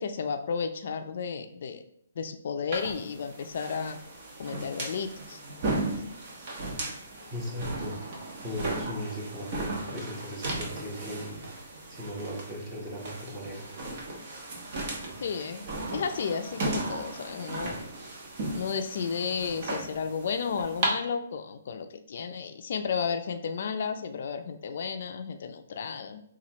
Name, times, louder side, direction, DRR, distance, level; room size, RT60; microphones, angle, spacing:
voice 1, 0.0-1.8 2.2-4.0 4.4-5.4 15.2-15.6 15.9-17.8 18.5-26.2, left 6 dB, 60° left, 6 dB, 0.4 m, -33 dB
sound 1, 2.7-20.9, right 2 dB, 45° right, 1.1 m, -36 dB
voice 2, 7.3-8.0 8.4-13.7, equal, 20° right, -3 dB, 1.3 m, -38 dB
5.4 x 2.4 x 3.0 m, 0.70 s
hypercardioid pair, 155°, 0 cm